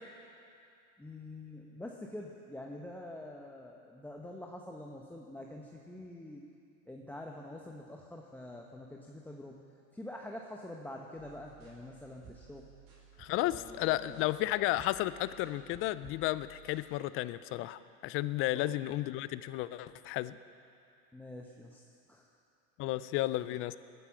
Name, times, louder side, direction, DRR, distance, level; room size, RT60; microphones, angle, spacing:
voice 1, 1.0-6.4 6.9-9.6 9.9-12.7 13.4-14.3 18.5-18.8 21.1-21.8 22.1-22.3 22.9-23.0 23.4-23.6, left 1 dB, 5° left, 0 dB, 0.9 m, -46 dB
sound 1, 11.2-16.9, right 7 dB, 35° right, 4.7 m, -57 dB
voice 2, 13.2-20.4 22.8-23.8, left 16 dB, 30° left, 15 dB, 0.4 m, -33 dB
19.0 x 9.9 x 7.1 m, 2.5 s
hypercardioid pair, 110°, 44 cm